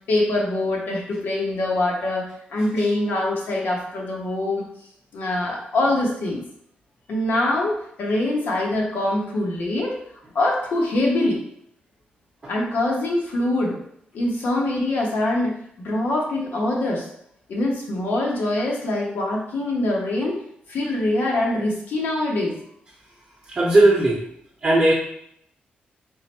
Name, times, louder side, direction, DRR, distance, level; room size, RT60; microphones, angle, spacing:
voice 1, 0.1-4.6 5.1-6.4 7.1-9.9 10.3-11.4 12.5-13.8 14.1-17.1 17.5-20.4 20.7-22.6, left 1 dB, 70° left, -2 dB, 1.1 m, -24 dB
voice 2, 23.5-24.2 24.6-24.9, right 2 dB, 30° right, -5 dB, 0.9 m, -17 dB
3.8 x 2.1 x 4.4 m, 0.71 s
wide cardioid pair, 150°, 3 cm